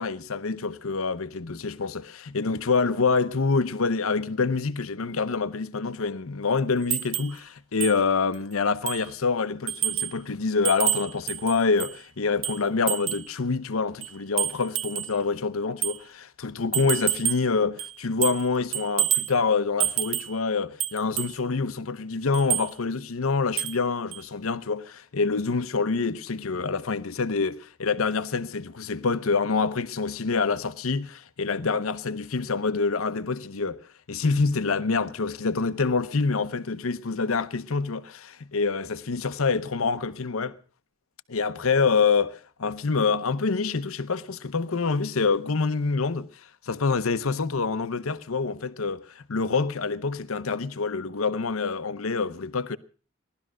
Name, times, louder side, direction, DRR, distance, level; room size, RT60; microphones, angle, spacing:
voice 1, 0.0-33.8 34.1-40.6 41.3-46.3 46.6-52.8, left 4 dB, 80° left, 0.8 m, -26 dB
sound 1, 6.9-7.4 7.8-8.0 8.3-8.4 8.9-9.1 9.7-10.2 10.6-12.0 12.4-13.3 14.0-15.2 15.8-16.0 16.7-17.5 17.8-18.5 18.7-19.3 19.8-20.4 20.8-21.4 22.3-22.7 23.6-23.8 24.1-24.2, right 12 dB, 65° right, 0.8 m, -28 dB
18.0 x 12.5 x 6.2 m
head